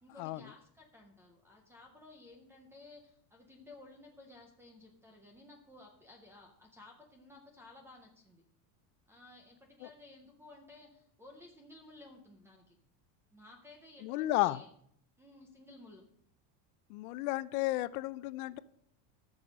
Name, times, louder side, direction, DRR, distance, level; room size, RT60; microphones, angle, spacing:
voice 1, 0.0-8.4 9.1-12.8 13.3-14.7 15.2-16.1, left 2 dB, 5° right, 2 dB, 0.4 m, -56 dB
voice 2, 14.0-14.6 16.9-18.6, left 17 dB, 65° left, 17 dB, 0.6 m, -33 dB
13.5 x 6.3 x 5.0 m, 0.68 s
cardioid pair, 175°, 47 cm